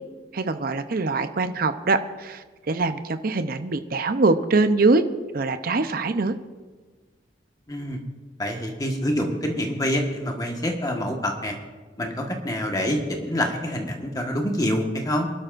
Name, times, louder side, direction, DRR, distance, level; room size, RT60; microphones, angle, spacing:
voice 1, 0.3-5.0 5.3-6.3, right 3 dB, 50° right, 9 dB, 0.7 m, -23 dB
voice 2, 7.7-8.0 8.4-11.6 12.0-15.3, equal, 20° left, 2 dB, 1.4 m, -26 dB
27.0 x 12.5 x 2.6 m, 1.4 s
head